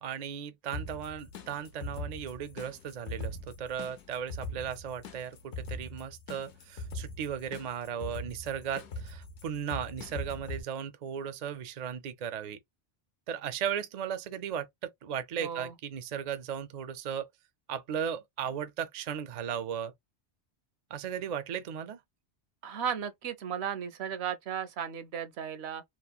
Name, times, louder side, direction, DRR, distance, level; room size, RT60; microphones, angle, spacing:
voice 1, 0.0-12.6 13.3-17.3 17.7-19.9 20.9-22.0, right 8 dB, 60° right, 0.4 m, -36 dB
sound 1, 0.7-10.6, left 1 dB, 80° left, 0.9 m, -41 dB
voice 2, 15.4-15.7 22.6-25.8, right 8 dB, 75° right, 0.8 m, -35 dB
2.9 x 2.0 x 2.3 m
omnidirectional pair, 1.2 m